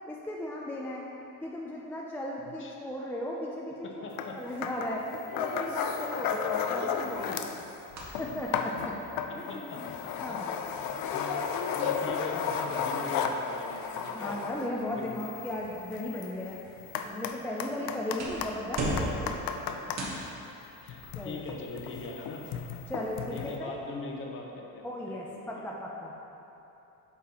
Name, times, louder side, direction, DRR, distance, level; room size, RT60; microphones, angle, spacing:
voice 1, 0.1-1.1 1.4-3.9 4.3-5.1 5.3-7.4 8.2-9.0 9.3-9.9 10.2-10.5 14.1-16.6 17.0-19.3 21.2-21.4 22.9-23.8 24.8-26.2, left 1 dB, 5° left, -3 dB, 0.3 m, -36 dB
voice 2, 3.8-4.4 9.3-9.8 10.3-11.3 11.7-14.4 14.9-15.2 19.3-19.8 20.8-22.5 23.3-25.7, left 3 dB, 35° left, 0 dB, 0.8 m, -41 dB
sound 1, 4.2-4.3 4.6-7.6 8.0-20.0 20.8-23.6, left 6 dB, 85° left, 0.5 m, -34 dB
sound 2, 6.8-24.2, right 1 dB, 50° right, 1.2 m, -43 dB
8.3 x 5.6 x 2.9 m, 3.0 s
cardioid pair, 150°, 34 cm